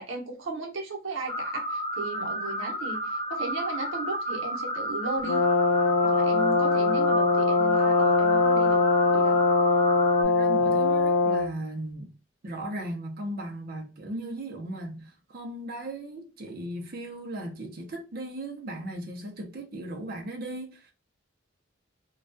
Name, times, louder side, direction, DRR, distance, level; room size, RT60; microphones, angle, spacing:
voice 1, 0.0-5.4 6.0-8.8 9.1-9.4, right 2 dB, 80° right, 0.8 m, -35 dB
sound 1, 1.3-10.2, equal, 20° left, 0.4 m, -32 dB
Brass instrument, 5.2-11.5, left 4 dB, 85° left, 0.4 m, -22 dB
voice 2, 10.2-12.1 12.4-20.9, right 1 dB, 50° right, 0.5 m, -37 dB
2.3 x 2.2 x 2.4 m
head